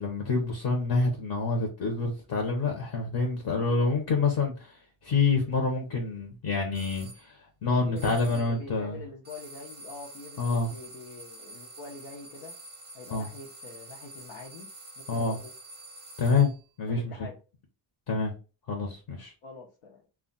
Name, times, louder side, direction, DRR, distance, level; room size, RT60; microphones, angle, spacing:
voice 1, 0.0-9.0 10.4-10.7 13.1-13.3 15.1-15.4 16.2-16.5 16.8-17.3 18.1-18.3 18.7-19.3, left 4 dB, 55° left, 0.8 m, -27 dB
sound 1, 6.7-7.2 8.0-8.6 9.2-16.6, right 2 dB, 25° right, 0.6 m, -47 dB
voice 2, 7.8-12.5 12.9-14.7 15.0-15.5 16.9-17.3 19.4-20.0, left 4 dB, 85° left, 0.8 m, -44 dB
2.3 x 2.1 x 3.8 m
wide cardioid pair, 165°, 45 cm